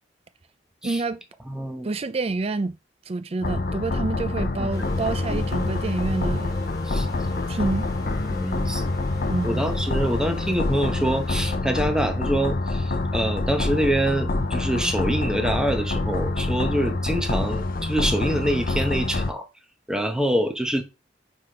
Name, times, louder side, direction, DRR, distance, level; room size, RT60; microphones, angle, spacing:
voice 1, 0.8-1.2 1.8-2.8 3.1-6.6 7.5-7.9 9.3-9.7, right 3 dB, 30° right, 0.4 m, -28 dB
voice 2, 1.5-1.9 4.6-4.9 5.3-5.4 6.9-7.1 8.3-8.9 9.4-19.5 19.9-20.8, right 1 dB, 5° right, 0.9 m, -25 dB
sound 1, 3.4-19.3, left 2 dB, 50° left, 0.6 m, -26 dB
sound 2, 4.7-11.6, left 3 dB, 20° left, 1.9 m, -41 dB
4.9 x 4.1 x 5.5 m
head